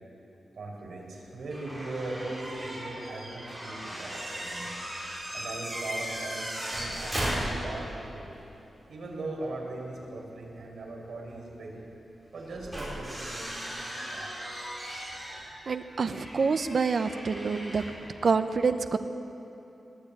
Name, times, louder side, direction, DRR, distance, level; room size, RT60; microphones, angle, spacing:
voice 1, 0.5-4.8 5.3-8.3 8.9-11.9 12.3-13.8 14.0-14.3, right 2 dB, 65° right, -2 dB, 5.0 m, -39 dB
sound 1, 1.5-8.0 8.3-8.4 10.4-10.5 12.3-18.1, equal, 5° right, 6.4 m, -37 dB
voice 2, 15.3-17.8 18.2-19.0, right 5 dB, 45° right, 9 dB, 0.8 m, -27 dB
21.0 x 14.5 x 8.6 m, 3.0 s
wide cardioid pair, 170°, 0 cm